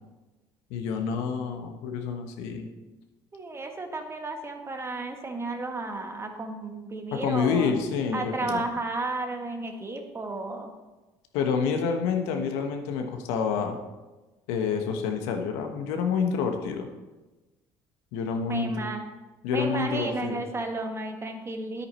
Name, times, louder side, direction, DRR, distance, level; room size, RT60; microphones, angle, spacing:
voice 1, 0.7-2.7 7.1-8.6 11.3-13.8 14.5-16.9 18.1-18.8 19.4-20.4, left 6 dB, 80° left, 4 dB, 1.2 m, -28 dB
voice 2, 3.3-7.7 8.1-10.7 18.5-19.0 19.5-21.9, right 2 dB, 25° right, 4 dB, 1.7 m, -33 dB
9.7 x 8.6 x 4.3 m, 1.1 s
supercardioid pair, 75°, 10 cm